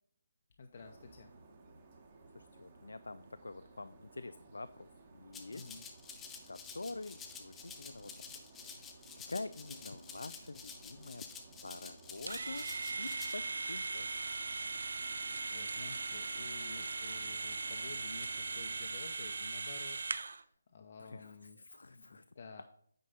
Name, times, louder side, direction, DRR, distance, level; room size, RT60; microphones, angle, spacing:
voice 1, 0.6-1.3 5.5-5.8 15.1-20.0 20.3-21.6 21.9-22.6, left 4 dB, 45° left, 4 dB, 0.8 m, -52 dB
sound 1, 0.7-18.9, right 3 dB, 35° right, 1.3 m, -59 dB
voice 2, 2.3-4.9 5.1-5.7 6.5-8.1 8.5-8.9 9.3-11.2 11.6-12.7 13.0-14.1 21.0-22.2, left 3 dB, 70° left, 12 dB, 0.3 m, -46 dB
Rattle (instrument), 5.3-13.3, left 6 dB, 10° left, 0.7 m, -50 dB
sound 2, 12.3-20.4, right 3 dB, 60° right, 0.4 m, -39 dB
9.1 x 5.3 x 3.9 m, 0.63 s
figure-of-eight pair, 145°, 0 cm